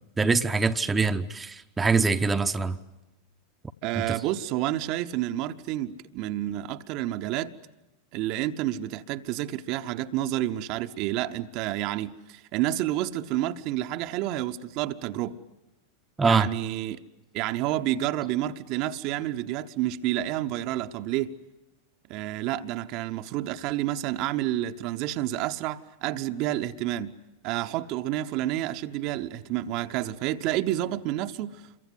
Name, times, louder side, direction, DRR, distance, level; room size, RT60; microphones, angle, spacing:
voice 1, 0.2-2.8 4.0-4.2 16.2-16.5, right 4 dB, 15° right, 0.8 m, -24 dB
voice 2, 3.8-7.6 8.1-15.4 16.2-17.0 17.3-21.4 22.1-27.1 27.4-31.8, right 14 dB, 40° right, 0.9 m, -29 dB
27.5 x 23.5 x 8.1 m
figure-of-eight pair, 90°, 0 cm